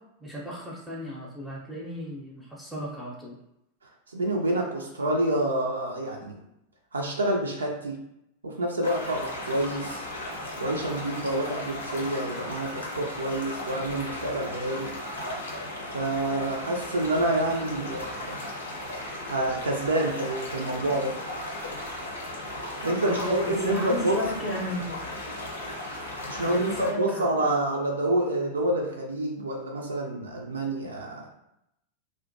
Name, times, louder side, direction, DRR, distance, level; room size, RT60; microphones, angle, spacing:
voice 1, 0.2-3.4 17.7-18.0 23.0-25.0 26.3-27.6, equal, 5° right, -4 dB, 0.6 m, -34 dB
voice 2, 4.1-6.4 6.9-8.0 8.4-10.1 10.6-14.9 15.9-18.4 19.3-21.1 22.8-24.2 26.3-31.3, right 1 dB, 75° right, 0 dB, 0.4 m, -28 dB
sound 1, 8.8-26.9, left 1 dB, 70° left, 0.6 m, -36 dB
2.4 x 2.1 x 2.6 m, 0.81 s
figure-of-eight pair, 90°, 0 cm